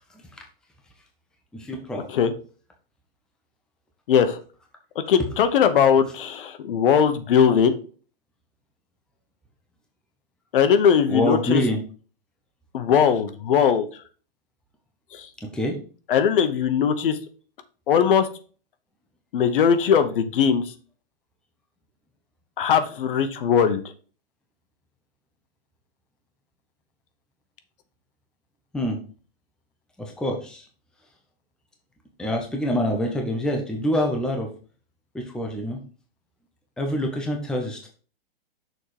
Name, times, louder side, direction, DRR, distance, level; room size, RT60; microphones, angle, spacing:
voice 1, 1.5-2.0 11.1-11.8 15.5-15.8 28.7-29.0 30.0-30.6 32.2-34.5 35.1-35.8 36.8-37.9, left 1 dB, ahead, 1 dB, 0.8 m, -25 dB
voice 2, 4.1-4.4 5.1-7.8 10.5-11.6 12.7-13.9 15.1-15.3 16.1-17.2 17.9-18.3 19.3-20.6 22.6-23.8, left 7 dB, 60° left, 10 dB, 1.1 m, -19 dB
6.5 x 4.3 x 4.8 m, 0.39 s
hypercardioid pair, 155°, 30 cm